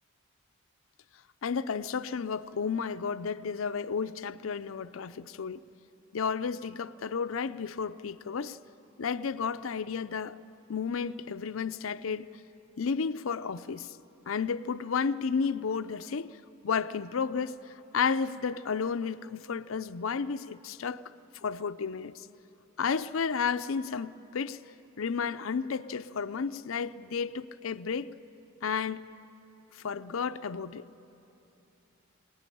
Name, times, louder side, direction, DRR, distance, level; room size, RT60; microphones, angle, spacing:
voice 1, 1.4-5.6 6.1-8.6 9.0-10.4 10.7-12.3 12.8-13.9 14.3-16.4 16.6-21.0 21.3-22.3 22.8-24.6 25.0-28.1 28.6-29.1 29.8-30.9, left 5 dB, 80° left, 0.5 m, -32 dB
24.0 x 19.0 x 10.0 m
head